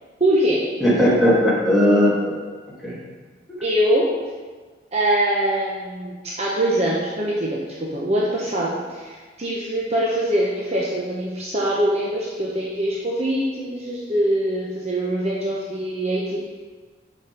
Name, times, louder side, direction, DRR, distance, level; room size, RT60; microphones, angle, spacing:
voice 1, 0.2-0.6 3.6-4.1 4.9-7.6 7.9-16.4, right 1 dB, 35° right, -5 dB, 1.0 m, -23 dB
voice 2, 0.8-2.3 2.8-3.0, equal, ahead, -9 dB, 2.4 m, -17 dB
6.8 x 5.3 x 5.2 m, 1.4 s
head